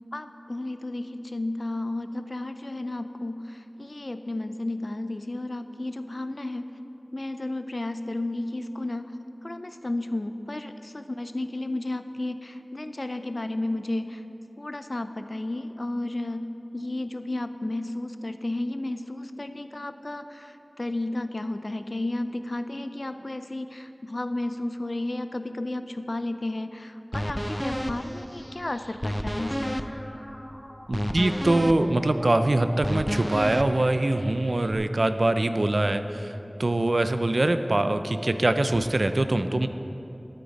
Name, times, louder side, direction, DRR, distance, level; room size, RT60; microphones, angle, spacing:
voice 1, 0.1-6.7 7.1-9.2 9.4-14.2 14.6-29.8, left 2 dB, 60° left, 9 dB, 0.5 m, -33 dB
sound 1, 27.1-34.7, equal, 10° left, 0.5 m, -32 dB
voice 2, 30.9-36.3 36.6-39.7, right 2 dB, 80° right, 9 dB, 0.4 m, -23 dB
12.5 x 8.7 x 4.1 m, 2.9 s
wide cardioid pair, 40°, 0 cm